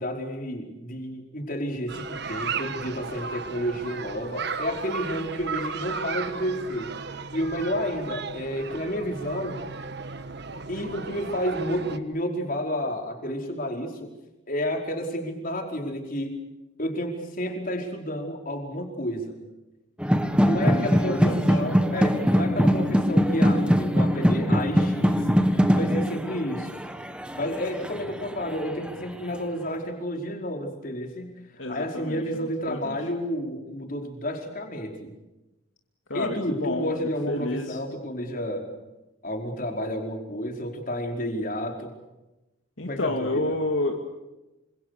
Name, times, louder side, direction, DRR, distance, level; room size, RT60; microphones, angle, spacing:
voice 1, 0.0-9.6 10.7-14.1 14.5-16.4 16.8-19.4 20.4-26.8 27.3-31.4 31.7-35.1 36.1-38.7 39.2-41.9 42.8-43.6, equal, 40° left, 2 dB, 5.0 m, -31 dB
sound 1, 1.9-12.0, right 5 dB, 55° right, 1.5 m, -35 dB
sound 2, 20.0-28.9, equal, 5° right, 1.6 m, -22 dB
voice 2, 20.6-21.6 31.6-33.1 36.1-36.9 37.3-37.8 42.8-44.2, left 2 dB, 65° left, 2 dB, 2.6 m, -30 dB
28.0 x 26.5 x 6.8 m, 1.0 s
head